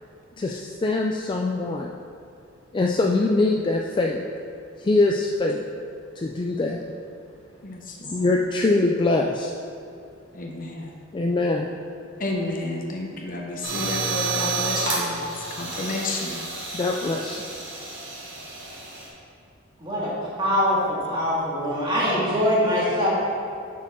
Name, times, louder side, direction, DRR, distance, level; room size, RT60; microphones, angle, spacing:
voice 1, 0.4-1.9 2.7-4.2 4.8-5.6 6.2-6.8 8.1-9.5 11.1-11.7 16.7-17.4, left 2 dB, 25° left, 0 dB, 0.3 m, -23 dB
voice 2, 7.6-8.5 10.3-10.9 12.2-16.4, left 2 dB, 45° left, 0 dB, 0.8 m, -31 dB
sound 1, 13.6-19.1, right 3 dB, 65° right, 1.7 m, -30 dB
voice 3, 19.8-20.1 20.4-23.1, equal, 25° right, -7 dB, 1.9 m, -23 dB
7.1 x 4.6 x 5.9 m, 2.5 s
head